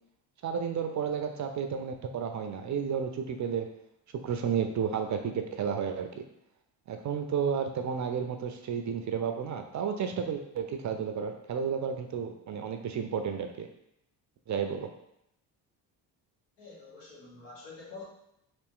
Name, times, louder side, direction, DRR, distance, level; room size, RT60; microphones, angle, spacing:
voice 1, 0.4-3.7 4.2-6.1 6.9-13.7 14.5-14.9, right 7 dB, 40° right, 6 dB, 0.4 m, -32 dB
voice 2, 16.6-18.0, left 4 dB, 85° left, -5 dB, 1.4 m, -47 dB
3.4 x 2.4 x 3.6 m, 0.79 s
supercardioid pair, 65°, 49 cm